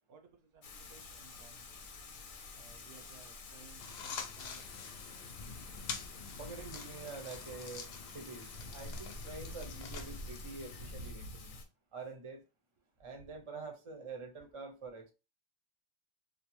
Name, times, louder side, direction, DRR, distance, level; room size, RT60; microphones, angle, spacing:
voice 1, 0.1-1.8 2.5-4.8, right 5 dB, 80° right, 0.8 m, -60 dB
Thunder / Rain, 0.6-11.6, left 2 dB, 60° left, 0.7 m, -48 dB
sound 1, 3.8-11.1, left 6 dB, 90° left, 0.8 m, -47 dB
voice 2, 6.4-11.6 11.9-12.4 13.0-15.1, right 4 dB, 35° right, 0.6 m, -46 dB
2.6 x 2.1 x 3.0 m
omnidirectional pair, 1.0 m